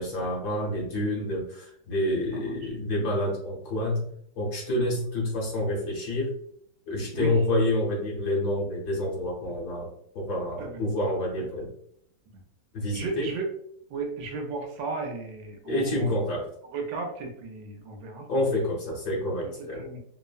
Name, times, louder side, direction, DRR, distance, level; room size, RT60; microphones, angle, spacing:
voice 1, 0.0-4.1 4.3-6.3 6.9-9.9 10.1-11.7 12.7-13.3 15.6-16.5 18.3-19.9, left 1 dB, 60° left, -4 dB, 1.2 m, -28 dB
voice 2, 2.3-2.7 4.8-4.9 7.1-7.4 10.6-10.8 12.9-13.5 13.9-16.1 16.7-18.3 19.4-19.5 19.8-20.0, right 4 dB, 80° right, 3 dB, 1.3 m, -35 dB
3.3 x 2.0 x 2.3 m, 0.69 s
omnidirectional pair, 2.1 m